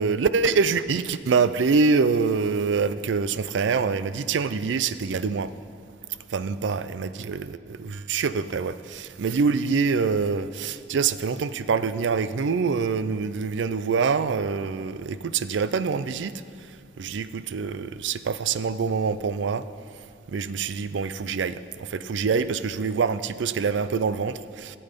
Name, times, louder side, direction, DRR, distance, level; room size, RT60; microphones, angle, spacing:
voice 1, 0.0-5.5 6.3-16.3 17.0-19.6 20.3-21.5 21.9-24.8, right 5 dB, 85° right, 14 dB, 0.4 m, -25 dB
14.0 x 7.8 x 5.2 m, 2.4 s
head